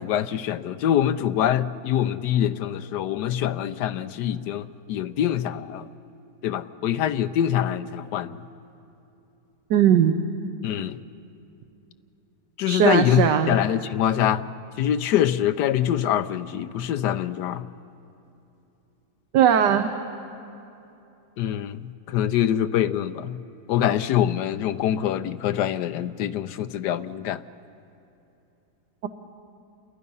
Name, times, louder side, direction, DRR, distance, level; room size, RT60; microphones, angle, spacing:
voice 1, 0.0-5.9 6.4-8.4 10.6-11.0 12.6-14.5 14.8-17.7 21.4-21.8 22.1-23.4 23.7-27.4, left 10 dB, 80° left, 1.3 m, -24 dB
voice 2, 9.7-10.2 12.7-13.6 19.3-19.9, right 9 dB, 85° right, 1.5 m, -19 dB
28.5 x 22.0 x 5.5 m
omnidirectional pair, 1.8 m